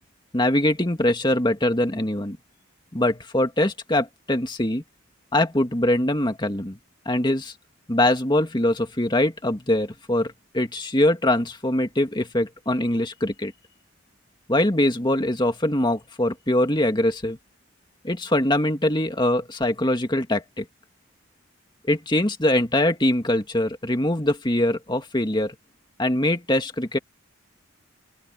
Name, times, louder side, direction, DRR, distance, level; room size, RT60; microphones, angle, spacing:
voice 1, 0.3-2.4 2.9-4.8 5.3-6.8 7.1-7.5 7.9-13.5 14.5-17.4 18.0-20.7 21.9-25.6 26.0-27.0, left 1 dB, 20° left, 2.0 m, -23 dB
open air
head